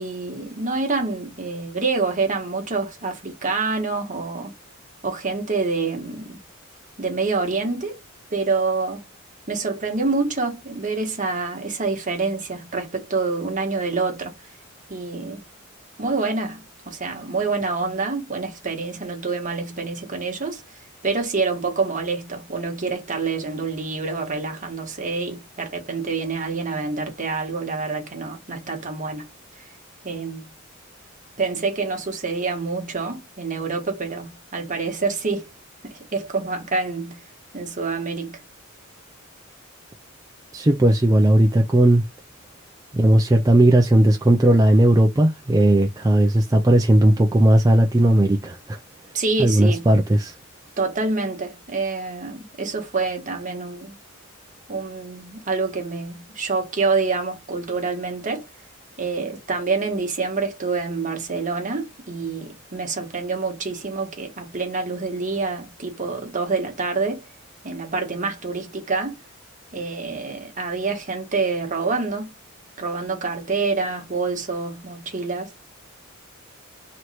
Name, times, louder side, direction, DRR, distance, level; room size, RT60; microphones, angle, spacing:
voice 1, 0.0-4.5 5.0-6.4 7.0-8.0 8.3-9.0 9.5-14.5 14.9-15.4 16.0-29.3 29.6-29.7 30.0-30.5 31.4-35.5 35.8-37.3 37.5-38.4 49.1-50.0 50.8-54.0 54.7-58.5 59.0-67.3 67.6-69.2 69.7-72.3 72.8-75.5, right 4 dB, 40° right, 1.3 m, -27 dB
voice 2, 40.5-42.0 42.9-48.8 49.4-50.3, right 1 dB, 15° right, 0.4 m, -16 dB
3.1 x 3.0 x 4.2 m
head